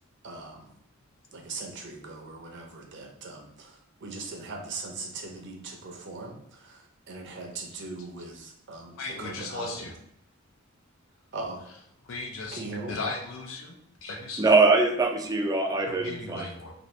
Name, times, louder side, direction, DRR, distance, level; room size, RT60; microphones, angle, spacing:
voice 1, 0.2-0.7 1.3-6.8 7.1-9.9 11.3-11.6 12.5-13.0, right 3 dB, 60° right, 1 dB, 0.6 m, -40 dB
voice 2, 9.0-9.9 12.1-12.6 12.9-13.7 14.0-14.4 15.9-16.7, left 3 dB, 80° left, 2 dB, 0.6 m, -36 dB
voice 3, 14.4-16.5, right 3 dB, 20° right, 3 dB, 0.3 m, -22 dB
2.6 x 2.5 x 3.1 m, 0.73 s
head